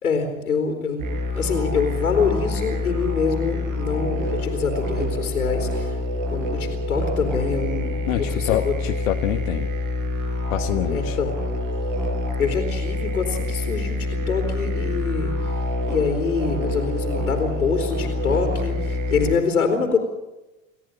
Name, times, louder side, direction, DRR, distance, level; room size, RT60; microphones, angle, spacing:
voice 1, 0.0-1.1 1.3-6.0 6.3-8.7 10.9-11.3 12.4-14.0 14.3-15.5 15.9-20.0, left 5 dB, 85° left, 3 dB, 3.8 m, -25 dB
sound 1, 1.0-19.4, left 2 dB, 45° right, 5.4 m, -26 dB
voice 2, 8.1-9.7 10.5-11.2, left 14 dB, 70° left, 6 dB, 1.3 m, -26 dB
29.0 x 14.0 x 9.0 m, 1.0 s
hypercardioid pair, 85°, 42 cm